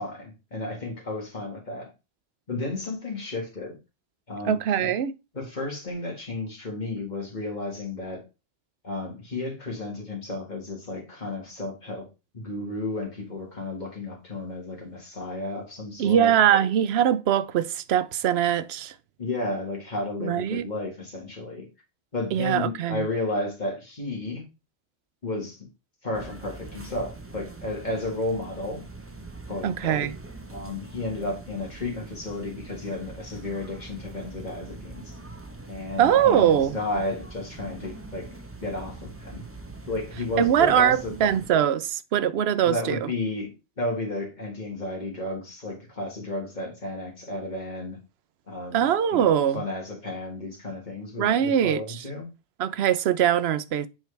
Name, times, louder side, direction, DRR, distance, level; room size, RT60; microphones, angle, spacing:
voice 1, 0.0-1.9 2.5-3.7 4.3-4.9 5.3-8.2 8.8-12.1 12.3-16.3 19.2-21.7 22.1-24.4 25.2-25.7 26.0-28.8 29.5-30.1 30.5-35.2 35.7-38.3 38.6-39.4 39.9-41.1 42.6-43.5 43.8-48.0 48.5-52.3, left 2 dB, 40° left, 1.9 m, -33 dB
voice 2, 4.5-5.1 16.0-18.9 20.2-20.7 22.3-23.0 29.6-30.1 36.0-36.8 40.4-43.0 48.7-49.6 51.2-52.0 52.6-53.9, right 9 dB, 70° right, 0.8 m, -22 dB
sound 1, 26.1-41.5, right 2 dB, 15° right, 0.6 m, -43 dB
7.5 x 4.5 x 3.3 m
omnidirectional pair, 1.2 m